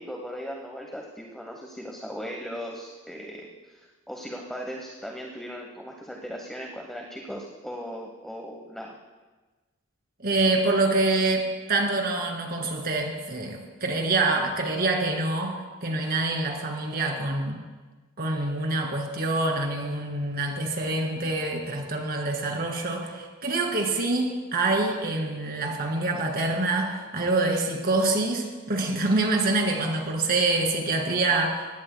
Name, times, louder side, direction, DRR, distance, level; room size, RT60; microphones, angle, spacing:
voice 1, 0.0-8.9, equal, ahead, 0 dB, 1.0 m, -38 dB
voice 2, 10.2-15.5 15.8-17.6 18.2-31.7, right 2 dB, 50° right, 1 dB, 2.4 m, -26 dB
20.0 x 16.5 x 2.2 m, 1.3 s
head